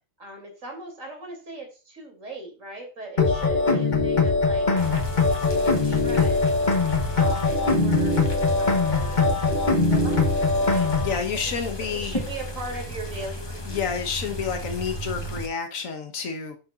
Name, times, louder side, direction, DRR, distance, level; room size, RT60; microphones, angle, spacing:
voice 1, 0.2-6.4 7.1-9.3 9.9-10.3 10.6-10.9 11.3-13.9, right 2 dB, 80° right, 3 dB, 3.5 m, -39 dB
sound 1, 3.2-11.2, left 3 dB, 40° left, 1.2 m, -22 dB
sound 2, 4.8-15.5, equal, 20° left, 1.2 m, -34 dB
voice 2, 11.0-12.2 13.7-16.6, left 6 dB, 90° left, 5 dB, 1.5 m, -29 dB
11.5 x 6.7 x 2.4 m, 0.33 s
omnidirectional pair, 1.3 m